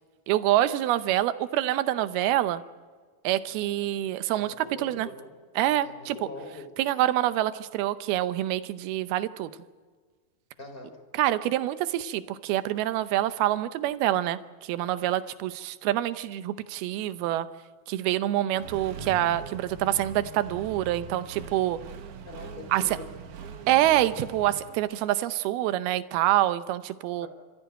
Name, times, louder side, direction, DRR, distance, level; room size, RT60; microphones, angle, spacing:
voice 1, 0.3-2.6 3.2-5.1 5.6-6.2 6.8-9.5 11.1-17.5 17.9-21.8 22.7-22.8 23.7-27.3, right 13 dB, 90° right, 12 dB, 2.7 m, -26 dB
voice 2, 4.3-5.3 5.8-6.7 10.6-11.0 22.2-23.1 27.2-27.3, left 2 dB, 15° left, 5 dB, 3.2 m, -43 dB
Accelerating revving vroom, 18.5-24.7, right 5 dB, 65° right, 2.6 m, -42 dB
27.0 x 15.0 x 9.0 m, 1.5 s
omnidirectional pair, 4.3 m